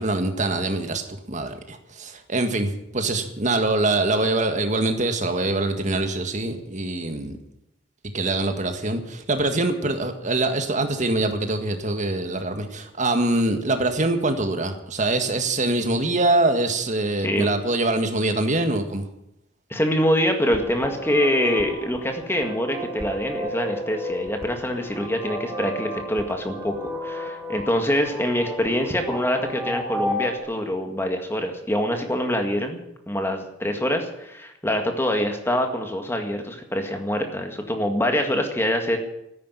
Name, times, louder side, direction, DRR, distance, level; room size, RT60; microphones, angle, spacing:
voice 1, 0.0-7.4 8.1-19.1, right 2 dB, 40° right, 6 dB, 1.8 m, -24 dB
voice 2, 19.7-39.0, equal, 10° left, 4 dB, 1.9 m, -25 dB
sound 1, 20.4-30.4, left 1 dB, 15° right, 2.6 m, -33 dB
13.5 x 10.0 x 9.8 m, 0.84 s
head